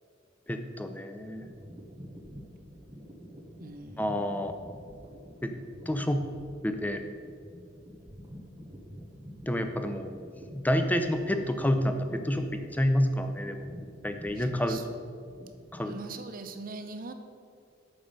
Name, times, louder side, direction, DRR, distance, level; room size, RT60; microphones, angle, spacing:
voice 1, 0.5-1.5 4.0-4.5 5.4-5.5 5.9-6.2 6.6-7.0 9.5-10.1 10.5-13.6 14.0-14.8 15.7-15.9, equal, 10° left, 7 dB, 0.6 m, -28 dB
sound 1, 1.2-16.3, equal, 20° right, 0.9 m, -48 dB
voice 2, 3.6-4.3 14.4-14.8 15.9-17.1, right 3 dB, 45° right, 7 dB, 0.7 m, -42 dB
8.9 x 7.0 x 5.4 m, 2.4 s
head